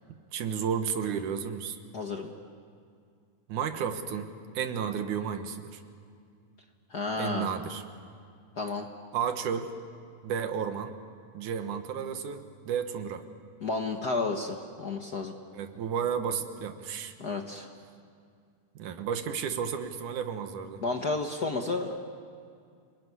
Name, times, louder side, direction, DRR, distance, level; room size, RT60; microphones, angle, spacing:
voice 1, 0.3-1.8 3.5-5.8 7.2-7.8 9.1-9.7 10.2-10.9 11.3-13.2 15.5-17.1 18.8-20.8, right 7 dB, 70° right, 8 dB, 2.8 m, -32 dB
voice 2, 1.9-2.3 6.9-7.5 8.6-8.9 13.6-15.4 17.2-17.7 20.8-22.0, left 3 dB, 55° left, 3 dB, 1.1 m, -31 dB
29.0 x 20.5 x 9.7 m, 2.3 s
omnidirectional pair, 3.7 m